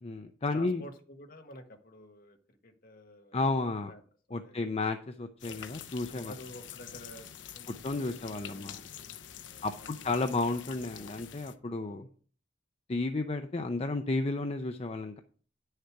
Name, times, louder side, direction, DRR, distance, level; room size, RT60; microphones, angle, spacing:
voice 1, 0.0-0.8 3.3-3.9 4.3-6.3 7.8-8.8 9.6-12.1 12.9-15.2, left 3 dB, 35° left, 7 dB, 0.6 m, -32 dB
voice 2, 0.5-3.4 3.8-4.0 4.3-4.6 5.4-5.7 6.1-7.3 7.5-9.1 9.4-10.4 11.9-12.1 12.9-13.0, left 1 dB, 50° left, 5 dB, 1.5 m, -51 dB
sound 1, 5.4-11.5, left 9 dB, 70° left, 0.7 m, -47 dB
9.9 x 6.5 x 4.7 m, 0.43 s
head